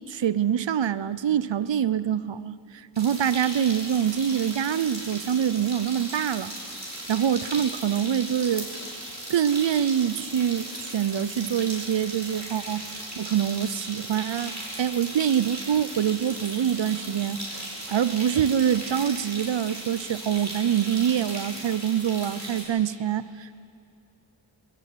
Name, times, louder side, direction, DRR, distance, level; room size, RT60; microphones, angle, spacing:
voice 1, 0.1-6.5 7.1-8.7 9.3-17.6 17.9-23.6, right 9 dB, 70° right, 17 dB, 0.8 m, -25 dB
sound 1, 3.0-22.6, right 1 dB, 35° right, 5.8 m, -37 dB
20.5 x 17.5 x 8.6 m, 2.5 s
wide cardioid pair, 70°, 46 cm